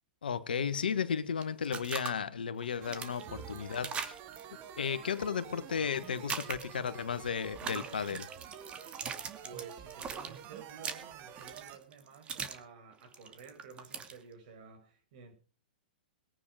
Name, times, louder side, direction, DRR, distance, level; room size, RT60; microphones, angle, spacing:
voice 1, 0.2-4.1 4.8-8.3, left 7 dB, 80° left, 1.5 m, -34 dB
sound 1, 1.4-2.1 2.6-4.4 6.0-6.9 7.5-12.6 12.9-14.2, right 6 dB, 20° right, 2.4 m, -40 dB
sound 2, 2.8-11.8, right 9 dB, 40° right, 2.2 m, -49 dB
voice 2, 3.2-3.8 9.4-15.3, right 6 dB, 55° right, 6.2 m, -51 dB
22.0 x 9.2 x 5.0 m
hypercardioid pair, 120°, 5 cm